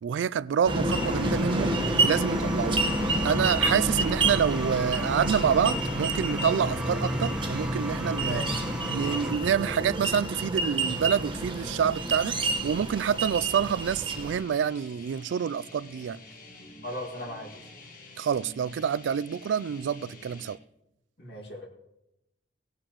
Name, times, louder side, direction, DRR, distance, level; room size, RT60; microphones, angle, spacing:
voice 1, 0.0-1.7 2.0-2.8 3.2-8.4 8.9-16.2 18.2-20.6, right 8 dB, 80° right, 0.3 m, -27 dB
sound 1, 0.7-14.4, right 2 dB, 25° right, 1.3 m, -28 dB
sound 2, 0.9-9.4, equal, 5° right, 0.8 m, -38 dB
voice 2, 8.2-8.6 16.8-17.7 21.2-21.7, left 1 dB, 70° left, 2.2 m, -38 dB
sound 3, 10.8-20.6, left 2 dB, 50° left, 1.6 m, -48 dB
18.5 x 10.5 x 3.1 m
head